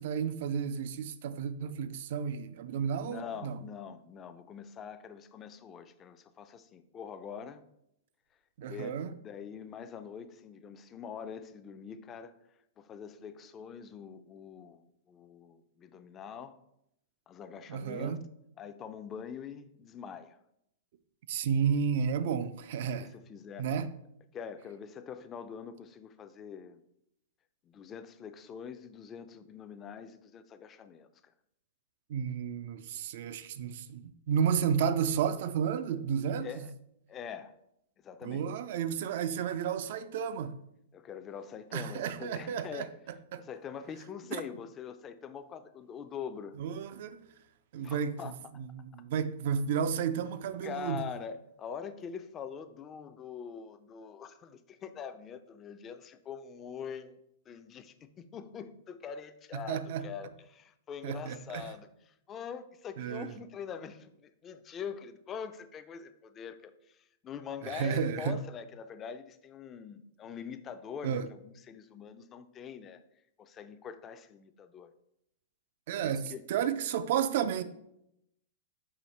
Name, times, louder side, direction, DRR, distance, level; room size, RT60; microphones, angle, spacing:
voice 1, 0.0-3.6 8.6-9.2 17.7-18.2 21.3-23.1 23.6-23.9 32.1-36.7 38.2-40.6 41.7-42.9 43.3-43.4 44.3-44.4 46.6-47.3 47.7-51.1 59.5-60.1 61.0-61.6 63.0-63.4 67.6-68.4 71.0-71.3 75.9-77.6, right 7 dB, 60° right, 0.3 m, -32 dB
voice 2, 3.1-7.6 8.6-12.3 12.8-16.6 17.3-18.2 18.6-20.4 22.9-23.7 24.3-26.8 27.6-31.1 36.4-36.7 37.1-37.5 38.0-38.5 40.9-42.9 43.4-46.6 47.8-48.4 50.6-57.2 57.5-61.9 62.3-73.0 73.4-74.9 76.0-76.4, left 7 dB, 25° left, 0.3 m, -44 dB
4.9 x 2.5 x 4.1 m
hypercardioid pair, 135°, 0 cm